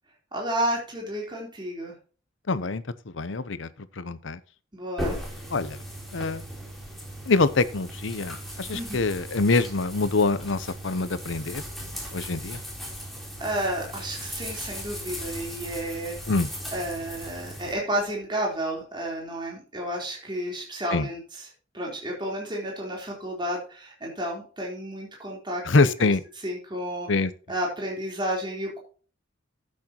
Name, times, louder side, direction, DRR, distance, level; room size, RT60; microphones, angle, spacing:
voice 1, 0.3-1.9 4.7-5.2 8.7-9.0 13.4-16.3 16.7-21.2 21.7-25.6 26.0-26.1 26.4-27.1 27.5-28.8, right 1 dB, 25° right, -2 dB, 3.6 m, -31 dB
voice 2, 2.5-4.4 5.5-5.8 6.1-6.4 7.3-11.6 11.9-12.6 16.3-16.5 20.9-21.1 25.6-26.2 27.1-27.3, left 3 dB, 70° left, 15 dB, 0.8 m, -25 dB
sound 1, 5.0-17.7, equal, ahead, 3.5 m, -37 dB
12.5 x 8.6 x 2.9 m, 0.37 s
head